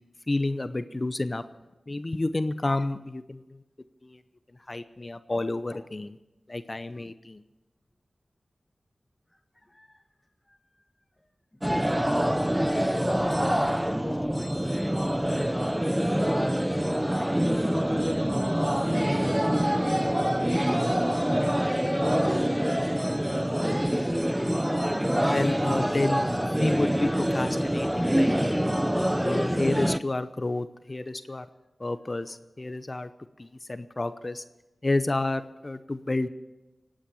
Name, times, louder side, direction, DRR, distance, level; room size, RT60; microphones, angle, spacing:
voice 1, 0.3-1.4 1.9-3.6 4.0-4.2 4.7-6.2 6.5-7.4 25.1-28.6 29.2-31.5 31.8-33.1 33.4-34.4 34.8-36.3, left 2 dB, 35° left, 12 dB, 0.7 m, -30 dB
voice 2, 9.3-10.0 10.5-10.8 11.2-11.3 11.5-11.9 12.6-13.3 13.6-16.3 16.9-18.1 18.8-23.9, left 1 dB, 15° left, 4 dB, 1.2 m, -44 dB
sound 1, 11.6-30.0, equal, 5° right, 0.6 m, -25 dB
18.5 x 8.9 x 7.1 m, 1.0 s
wide cardioid pair, 55°, 0 cm